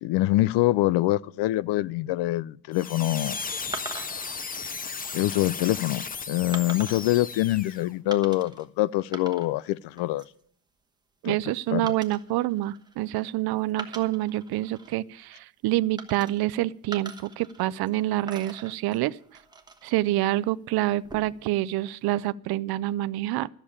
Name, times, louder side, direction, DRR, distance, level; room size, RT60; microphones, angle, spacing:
voice 1, 0.0-3.4 5.1-10.2 11.2-11.3 11.7-11.8, left 16 dB, 80° left, 0.5 m, -25 dB
sound 1, 2.7-7.9, left 5 dB, 20° left, 0.6 m, -35 dB
sound 2, 3.7-4.4 5.1-5.4 6.5-7.1 8.1-8.7 9.0-9.7 10.0-10.4 11.9-13.3 13.7-14.9 16.0-16.6 16.9-17.9 18.3-20.0 20.9-21.5, right 3 dB, 10° right, 1.2 m, -42 dB
voice 2, 11.2-19.2 19.8-23.5, right 15 dB, 65° right, 0.5 m, -27 dB
13.0 x 6.7 x 8.6 m
cardioid pair, 145°, 41 cm